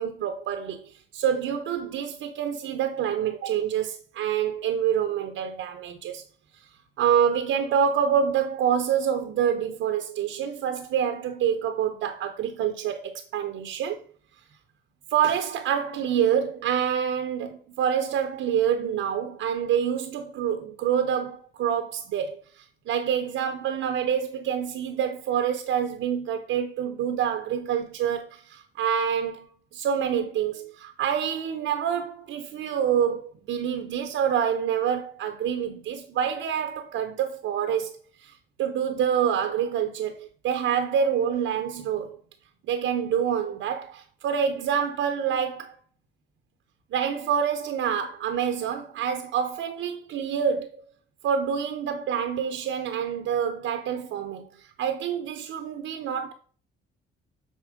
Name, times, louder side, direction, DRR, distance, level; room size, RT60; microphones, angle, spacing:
voice 1, 0.0-6.2 7.0-14.0 15.1-29.5 29.7-38.0 38.2-42.2 42.7-45.8 46.9-50.8 51.2-56.3, right 8 dB, 80° right, 0.7 m, -27 dB
6.4 x 4.1 x 5.0 m
cardioid pair, 90°, 20 cm